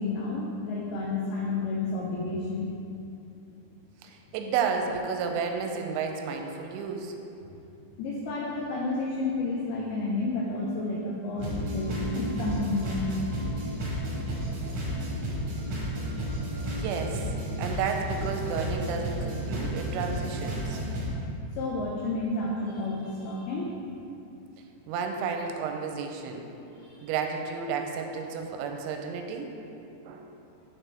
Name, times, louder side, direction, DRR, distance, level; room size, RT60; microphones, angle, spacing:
voice 1, 0.0-2.7 8.0-13.0 21.5-23.8 26.7-27.0, left 2 dB, 90° left, -3 dB, 2.2 m, -31 dB
voice 2, 4.0-7.1 16.8-17.3 17.6-20.8 24.9-26.5 27.0-30.3, right 6 dB, 90° right, 4 dB, 2.9 m, -32 dB
sound 1, 11.4-21.1, equal, 70° right, 1.6 m, -32 dB
9.9 x 4.5 x 3.3 m, 2.7 s
omnidirectional pair, 5.2 m